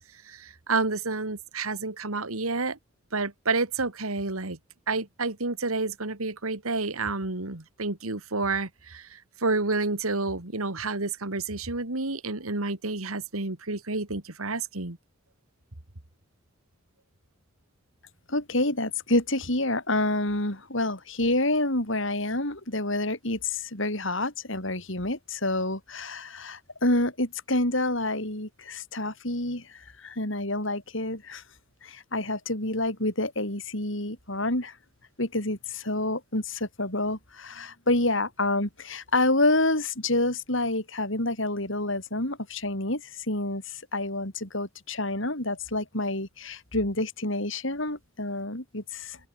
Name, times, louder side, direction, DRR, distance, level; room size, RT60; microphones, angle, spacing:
voice 1, 0.3-2.8 3.1-4.6 4.9-15.0, right 3 dB, 90° right, 2.6 m, -29 dB
voice 2, 18.3-31.4 31.8-34.7 35.2-49.2, left 2 dB, 65° left, 6.2 m, -28 dB
open air
head